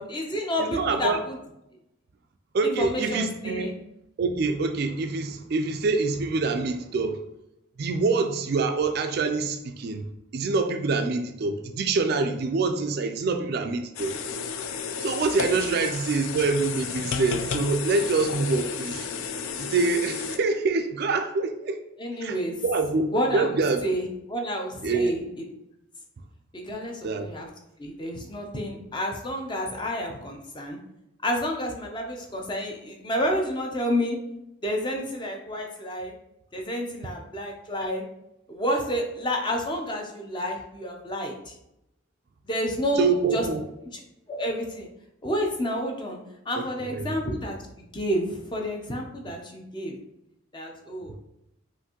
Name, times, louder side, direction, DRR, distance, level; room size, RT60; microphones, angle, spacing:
voice 1, 0.0-1.4 2.6-3.7 15.6-15.7 22.0-22.5 23.1-23.5 23.8-25.2 26.5-27.5 27.8-30.8 31.2-34.2 34.6-36.1 36.5-38.0 38.5-41.5 42.5-43.4 44.3-44.9 45.2-46.2 46.5-50.0 50.5-51.1, equal, 20° left, 1 dB, 0.5 m, -29 dB
voice 2, 0.6-1.2 2.5-3.7 4.2-7.2 7.8-10.1 10.3-14.1 15.0-19.1 19.6-21.8 22.2-23.8 24.8-25.1 27.0-27.3 43.0-43.6 46.5-47.1, right 4 dB, 50° right, 6 dB, 0.3 m, -26 dB
sound 1, 14.0-20.4, left 6 dB, 80° left, 0.4 m, -32 dB
5.7 x 2.6 x 2.9 m, 0.85 s
head